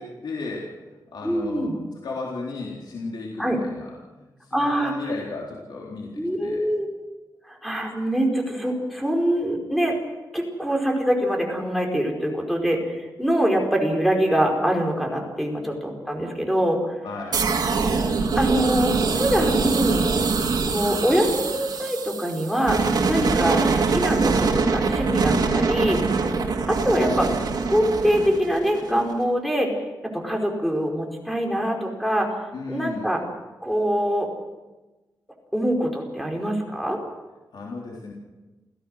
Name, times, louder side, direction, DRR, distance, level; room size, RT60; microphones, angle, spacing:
voice 1, 0.0-6.6 17.0-17.5 32.5-33.1 37.5-38.1, left 3 dB, 80° left, -3 dB, 3.8 m, -35 dB
voice 2, 1.2-1.8 3.4-3.6 4.5-4.9 6.2-6.9 7.5-9.9 10.3-16.9 18.3-20.1 20.7-26.0 26.7-27.3 27.7-29.7 30.1-32.3 32.7-33.2 33.6-34.3 35.5-37.0, equal, ahead, 1 dB, 4.9 m, -24 dB
sound 1, 17.3-29.1, right 4 dB, 65° right, 2.9 m, -23 dB
28.5 x 15.5 x 6.5 m, 1.1 s
wide cardioid pair, 120°, 7 cm